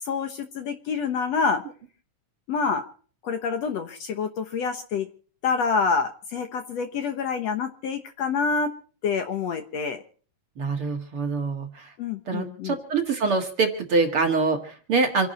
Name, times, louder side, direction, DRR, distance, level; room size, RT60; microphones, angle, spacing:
voice 1, 0.0-1.6 2.5-2.9 3.2-5.1 5.4-8.7 9.0-10.0 12.0-12.8, left 5 dB, 60° left, 7 dB, 2.1 m, -27 dB
voice 2, 10.6-11.9 12.3-15.3, right 4 dB, 45° right, 4 dB, 2.4 m, -25 dB
28.0 x 11.0 x 4.2 m, 0.43 s
omnidirectional pair, 3.7 m